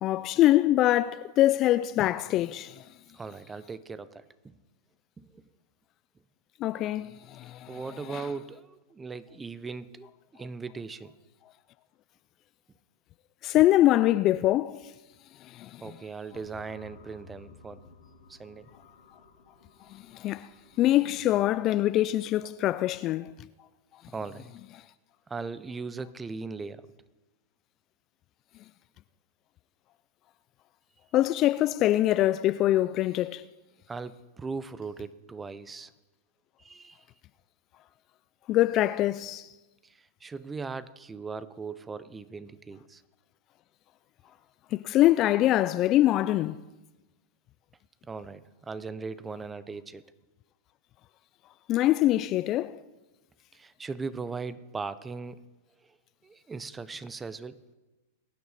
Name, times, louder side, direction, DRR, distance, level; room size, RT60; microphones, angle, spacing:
voice 1, 0.0-2.8 6.6-7.7 8.1-8.2 13.4-14.8 15.5-15.8 19.9-20.5 20.8-23.3 31.1-33.4 38.5-39.5 44.7-46.6 51.7-52.8, left 14 dB, 40° left, 0.4 m, -24 dB
voice 2, 3.1-4.6 5.2-5.4 7.7-11.1 15.8-17.8 18.3-18.7 24.1-24.5 25.3-27.0 33.9-35.9 36.6-37.1 39.8-43.0 48.0-50.0 53.5-55.4 55.8-56.0 56.2-57.6, right 4 dB, 15° right, 0.7 m, -39 dB
sound 1, 16.3-22.1, left 3 dB, 80° left, 3.1 m, -55 dB
22.5 x 9.3 x 4.2 m
hypercardioid pair, 110°, 0 cm